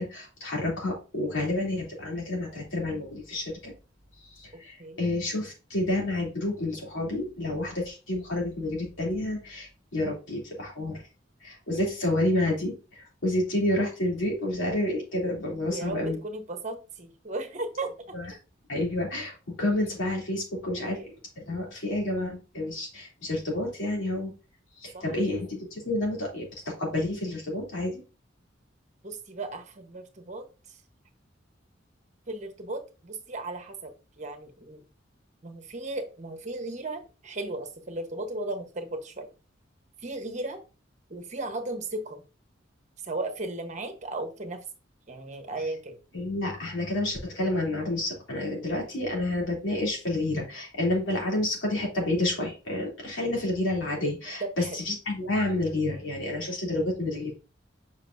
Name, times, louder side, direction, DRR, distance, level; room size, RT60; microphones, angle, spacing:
voice 1, 0.0-3.7 4.3-11.0 11.4-16.2 18.1-18.3 18.7-21.0 21.4-24.3 24.8-28.0 46.1-57.3, left 1 dB, 80° left, -2 dB, 3.0 m, -29 dB
voice 2, 4.5-5.1 15.7-18.1 20.7-21.2 24.9-25.0 29.0-30.8 32.3-33.9 34.2-34.8 35.4-39.3 40.0-40.6 41.1-42.2 43.0-44.6 45.1-46.0 54.4-54.8, right 2 dB, 40° right, 7 dB, 1.1 m, -36 dB
7.5 x 5.5 x 2.6 m, 0.32 s
head